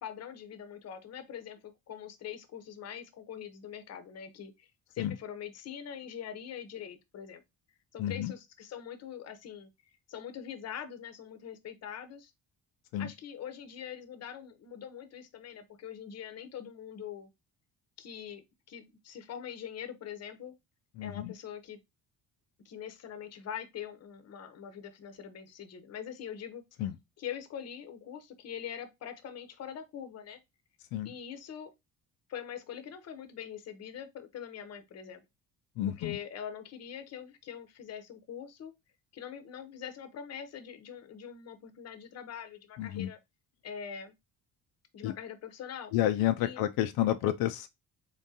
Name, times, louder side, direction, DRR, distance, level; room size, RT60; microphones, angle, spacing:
voice 1, 0.0-4.7 4.9-7.4 7.9-9.7 10.1-12.3 13.0-17.3 18.0-20.5 21.0-21.8 22.6-26.6 27.2-30.4 31.0-31.7 32.3-35.2 36.0-38.7 39.1-43.2 43.6-44.2 44.9-45.9 46.4-46.6, left 8 dB, 45° left, 0.8 m, -43 dB
voice 2, 8.0-8.3 12.9-13.1 21.0-21.3 26.8-26.9 30.9-31.1 35.8-36.2 42.8-43.1 45.0-45.1 45.9-47.7, left 12 dB, 85° left, 0.5 m, -30 dB
3.7 x 3.7 x 2.7 m
cardioid pair, 135°, 35 cm